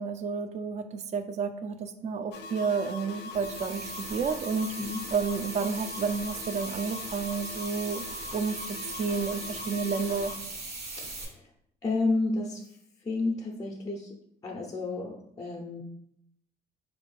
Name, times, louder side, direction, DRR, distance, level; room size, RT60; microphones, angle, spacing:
voice 1, 0.0-4.7 5.1-8.0 8.3-8.6 9.0-10.4, right 5 dB, 45° right, 10 dB, 0.4 m, -31 dB
sound 1, 2.3-10.4, left 4 dB, 80° left, 0.4 m, -42 dB
sound 2, 3.3-11.3, right 3 dB, 70° right, 1.2 m, -40 dB
voice 2, 11.0-11.5 11.8-12.8 13.0-14.1 14.4-15.8, left 3 dB, 20° left, 0 dB, 0.4 m, -31 dB
4.1 x 2.5 x 3.1 m, 0.75 s
cardioid pair, 110°, 17 cm